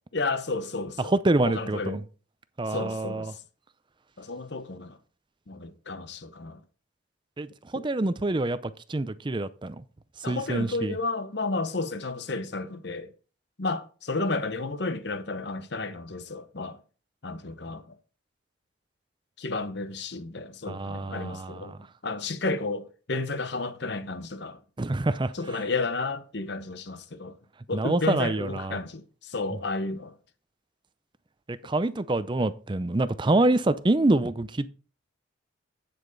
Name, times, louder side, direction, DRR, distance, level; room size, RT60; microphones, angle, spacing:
voice 1, 0.1-1.2 1.4-2.0 2.7-3.4 4.2-5.0 5.5-6.6 7.7-7.8 10.2-13.1 13.6-16.8 17.2-18.0 19.4-21.8 22.0-24.6 25.3-27.4 27.7-30.1, left 3 dB, 55° left, 0.9 m, -32 dB
voice 2, 1.2-2.0 2.6-3.3 7.4-7.5 7.7-9.8 10.3-10.9 20.7-21.6 24.8-25.3 27.7-28.8 31.5-34.7, right 2 dB, 25° right, 0.5 m, -26 dB
8.8 x 7.9 x 4.0 m
head